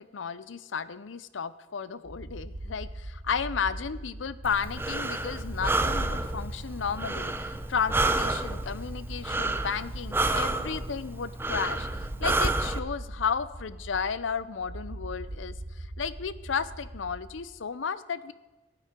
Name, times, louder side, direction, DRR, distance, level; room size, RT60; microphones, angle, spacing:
voice 1, 0.0-18.3, left 6 dB, 85° left, 16 dB, 0.6 m, -33 dB
sound 1, 2.0-17.6, right 1 dB, 50° right, 1.0 m, -41 dB
Breathing, 4.4-12.8, right 2 dB, 10° right, 0.6 m, -30 dB
15.0 x 9.0 x 5.1 m, 1.2 s
head